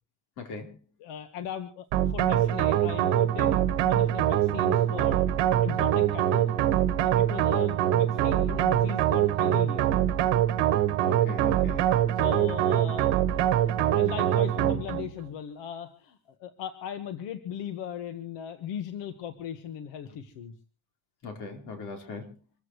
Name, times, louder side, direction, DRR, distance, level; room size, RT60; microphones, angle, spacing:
voice 1, 0.4-0.8 11.0-11.8 21.2-22.4, left 3 dB, 60° left, 3 dB, 4.5 m, -39 dB
voice 2, 1.0-3.6 3.8-5.2 5.6-6.5 7.0-9.9 12.2-13.1 13.5-20.5, left 9 dB, 90° left, 8 dB, 1.6 m, -38 dB
sound 1, 1.9-15.1, right 11 dB, 75° right, 1.3 m, -24 dB
26.5 x 14.5 x 3.2 m, 0.35 s
cardioid pair, 175°, 42 cm